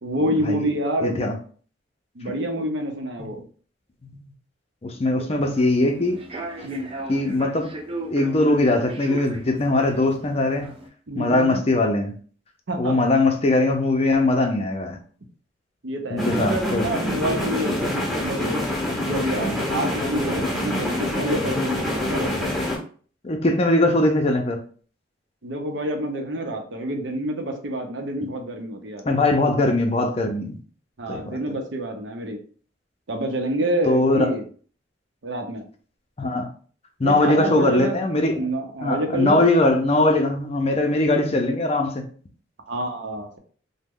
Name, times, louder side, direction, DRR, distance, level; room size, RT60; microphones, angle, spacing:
voice 1, 0.0-1.3 2.1-3.4 5.1-5.3 6.6-6.9 11.1-11.6 12.7-13.0 15.8-18.6 19.0-22.5 25.4-29.1 31.0-32.4 33.1-34.4 35.2-35.6 37.0-38.0 38.4-39.4 42.7-43.4, right 1 dB, 75° right, 3 dB, 0.7 m, -28 dB
voice 2, 1.0-1.4 4.0-4.2 4.8-6.2 7.1-7.7 8.1-10.7 11.1-12.1 12.8-15.0 16.1-16.9 23.2-24.6 28.2-28.3 29.0-30.6 31.1-31.6 33.9-34.3 36.2-36.5 37.0-38.5 38.8-42.1, left 2 dB, 35° left, 4 dB, 0.5 m, -21 dB
Human voice / Subway metro underground, 5.4-10.9, right 2 dB, 30° right, 0.5 m, -36 dB
sound 1, 16.2-22.8, left 1 dB, ahead, 0.7 m, -26 dB
3.0 x 2.1 x 3.6 m, 0.43 s
head